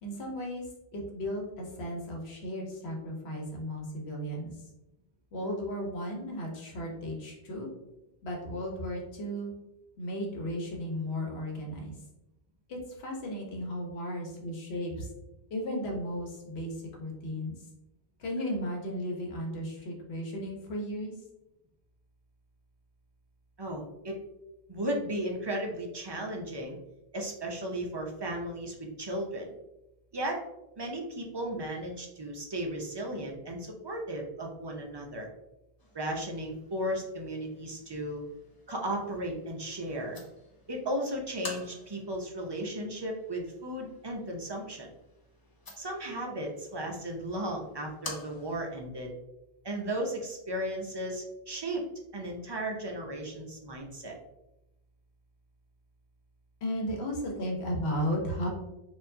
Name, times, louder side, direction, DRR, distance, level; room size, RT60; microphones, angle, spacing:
voice 1, 0.0-0.6 0.9-4.5 5.3-7.7 8.2-9.5 10.0-11.9 12.7-15.1 15.5-17.5 18.2-21.1 56.6-58.5, equal, 75° left, 0 dB, 1.2 m, -35 dB
voice 2, 23.6-24.2 24.7-26.8 27.1-29.5 30.1-30.4 30.8-35.3 35.9-38.2 38.7-40.2 40.7-44.9 45.8-49.1 49.6-51.8 52.1-54.2, right 1 dB, 35° right, 0 dB, 0.4 m, -35 dB
sound 1, 35.8-48.8, left 2 dB, 35° left, 0.3 m, -50 dB
4.4 x 2.6 x 2.6 m, 0.91 s
omnidirectional pair, 1.1 m